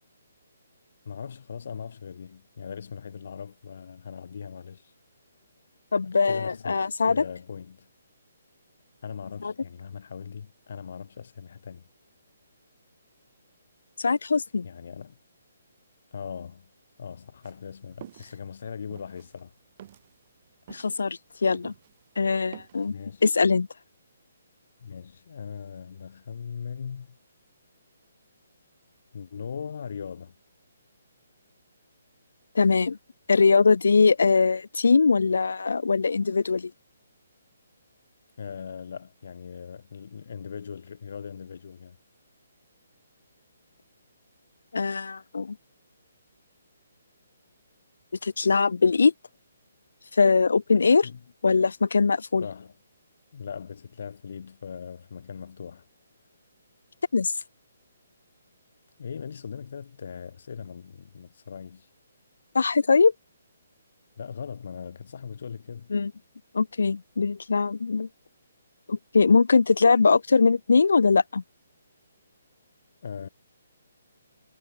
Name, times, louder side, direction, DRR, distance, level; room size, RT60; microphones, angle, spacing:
voice 1, 1.0-4.9 6.0-7.9 9.0-11.9 14.6-15.2 16.1-16.7 17.0-19.5 22.9-23.2 24.8-27.2 29.1-30.3 38.4-42.0 51.0-51.2 52.4-52.7 53.3-55.9 59.0-61.9 64.2-65.9 73.0-73.3, left 6 dB, 55° left, 4.5 m, -39 dB
voice 2, 5.9-7.2 9.4-9.5 14.0-14.7 20.7-21.7 22.2-22.9 23.2-23.7 32.5-33.0 33.3-36.7 44.7-45.6 48.2-49.1 50.1-51.1 51.4-52.5 57.1-57.3 62.5-63.1 65.9-66.1 66.5-68.1 68.9-71.4, left 4 dB, 85° left, 0.5 m, -21 dB
sound 1, 17.4-22.0 22.3-22.9, right 12 dB, 35° right, 2.1 m, -48 dB
hypercardioid pair, 165°, 0 cm